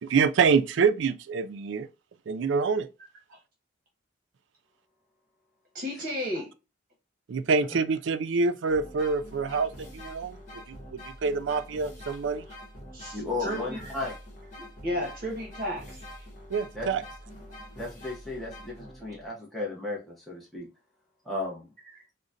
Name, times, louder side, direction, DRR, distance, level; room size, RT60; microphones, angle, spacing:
voice 1, 0.0-1.9 2.3-2.9 7.3-12.4 16.5-17.0, right 5 dB, 80° right, 0.4 m, -26 dB
voice 2, 5.7-6.5 12.9-13.9 14.6-16.0, equal, 45° right, 0.9 m, -33 dB
sound 1, 8.7-19.3, equal, 40° left, 0.9 m, -45 dB
voice 3, 13.1-14.1 16.7-16.9 17.8-20.7 21.2-21.7, left 2 dB, ahead, 0.7 m, -34 dB
3.8 x 2.1 x 2.4 m
head